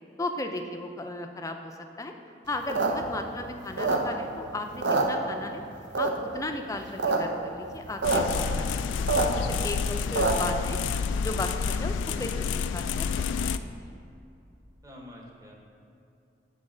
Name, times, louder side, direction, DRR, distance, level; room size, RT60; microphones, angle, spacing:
voice 1, 0.2-2.1 2.5-5.6 6.0-8.7 8.9-10.8 11.2-13.2 13.8-13.9, left 2 dB, 20° left, 5 dB, 0.5 m, -36 dB
sound 1, 2.5-4.4 4.7-5.6 5.9-6.4 6.8-7.2 7.4-7.5 7.7-8.2 8.6-10.6, right 3 dB, 70° right, 0.7 m, -26 dB
sound 2, 8.0-13.6, left 6 dB, 85° left, 0.3 m, -29 dB
voice 2, 14.8-15.5, equal, 20° right, -1 dB, 1.0 m, -45 dB
8.5 x 4.1 x 6.2 m, 2.6 s
head